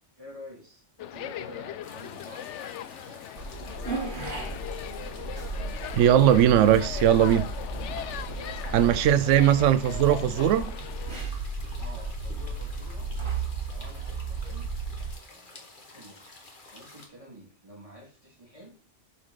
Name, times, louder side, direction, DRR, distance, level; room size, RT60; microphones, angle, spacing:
voice 1, 0.2-3.2 3.5-5.0 8.3-9.9 11.8-14.7 15.3-16.2 16.7-18.7, equal, 30° right, 2.7 m, -49 dB
sound 1, 1.0-11.2, left 11 dB, 80° left, 0.9 m, -39 dB
sound 2, 1.8-17.1, left 2 dB, 45° left, 1.7 m, -50 dB
sound 3, 3.4-15.1, right 3 dB, 45° right, 1.7 m, -35 dB
voice 2, 5.9-7.5 8.7-10.7, right 10 dB, 85° right, 0.9 m, -20 dB
7.3 x 4.4 x 6.5 m
omnidirectional pair, 1.2 m